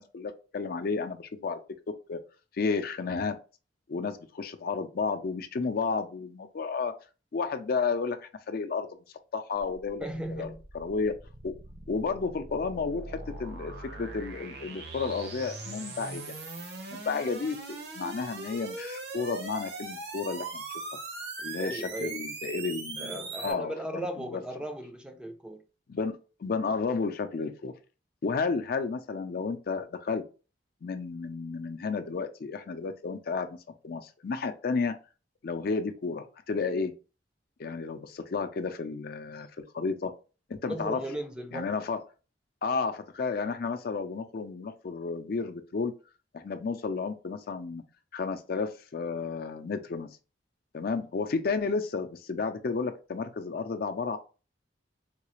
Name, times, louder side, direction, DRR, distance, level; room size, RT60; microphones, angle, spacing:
voice 1, 0.0-1.6 2.1-2.2 2.5-3.3 3.9-6.9 7.3-8.9 9.3-10.0 10.3-11.1 11.4-11.5 11.9-16.3 16.9-17.6 17.9-20.6 21.4-24.4 25.9-27.7 28.2-30.2 30.8-33.6 33.8-34.9 35.4-36.9 37.6-40.1 40.5-41.0 41.5-42.0 42.6-45.9 46.3-47.8 48.1-50.1 50.7-54.2, left 4 dB, 55° left, 0.4 m, -32 dB
sound 1, 9.6-23.5, right 3 dB, 65° right, 0.8 m, -40 dB
voice 2, 10.0-10.6 21.6-22.1 23.0-25.6 40.6-41.7, right 1 dB, 5° right, 0.4 m, -37 dB
3.7 x 2.4 x 3.0 m
head